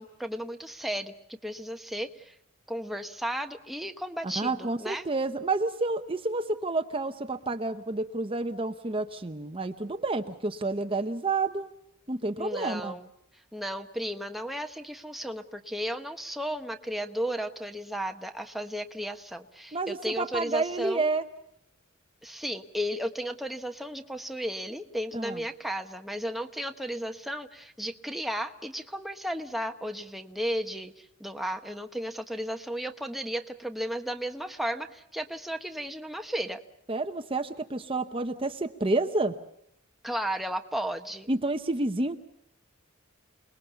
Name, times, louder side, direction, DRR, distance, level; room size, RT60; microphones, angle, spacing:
voice 1, 0.0-2.4 2.7-5.1 12.4-13.1 13.5-21.1 22.2-36.6 40.0-41.3, equal, ahead, 5 dB, 1.1 m, -34 dB
voice 2, 4.2-11.7 12.1-13.0 19.7-21.2 25.1-25.4 36.9-39.3 41.3-42.2, right 3 dB, 25° right, 7 dB, 0.8 m, -29 dB
28.0 x 20.5 x 7.0 m, 0.77 s
head